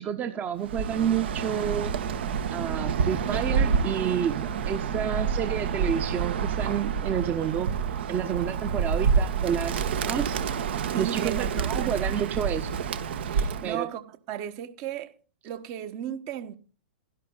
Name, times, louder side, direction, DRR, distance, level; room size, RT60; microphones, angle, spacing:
voice 1, 0.0-1.9 2.5-7.7 8.1-10.4 11.0-12.7 13.6-13.9, right 9 dB, 25° right, 1.0 m, -29 dB
Bird, 0.6-13.8, right 6 dB, 65° right, 1.3 m, -28 dB
voice 2, 10.9-11.9 13.2-15.1 15.4-16.5, right 10 dB, 40° right, 1.3 m, -35 dB
12.5 x 11.5 x 4.0 m
hypercardioid pair, 110°, 6 cm